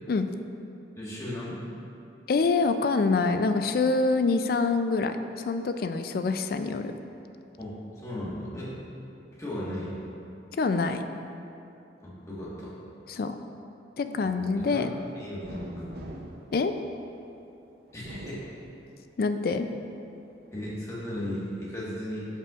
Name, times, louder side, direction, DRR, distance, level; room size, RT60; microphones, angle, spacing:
voice 1, 1.0-1.6 7.6-8.7 9.3-9.9 12.0-12.7 14.2-14.9 15.1-16.0 17.9-18.5 20.5-22.3, left 1 dB, 15° left, -7 dB, 1.4 m, -36 dB
voice 2, 2.3-6.9 10.6-11.0 13.1-13.4 14.0-14.9 16.5-16.7 19.2-19.7, left 4 dB, 55° left, 8 dB, 0.3 m, -25 dB
sound 1, 15.4-17.3 17.9-19.2 19.7-20.6, right 1 dB, 55° right, 0.6 m, -44 dB
13.5 x 5.5 x 2.4 m, 2.9 s
head